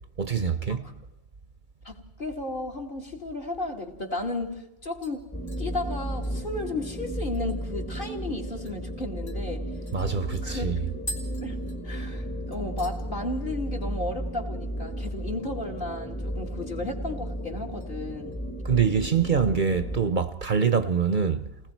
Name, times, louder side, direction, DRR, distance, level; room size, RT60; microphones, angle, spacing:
voice 1, 0.2-0.9 9.9-10.8 18.6-21.5, right 6 dB, 50° right, 0.9 m, -24 dB
voice 2, 1.8-5.3 5.6-9.7 10.4-10.7 11.4-11.6 11.8-18.4, left 2 dB, 50° left, 2.8 m, -34 dB
sound 1, 5.0-7.8 8.2-8.3 8.6-8.8 9.3-12.3 12.5-13.0 13.4-13.8 14.0-14.1 16.2-16.9 17.2-17.9 18.3-18.6 19.1-20.1 20.4-20.5, equal, 70° left, 3.2 m, -46 dB
sound 2, 5.3-20.1, equal, 5° left, 1.1 m, -34 dB
29.5 x 19.5 x 4.6 m
omnidirectional pair, 1.1 m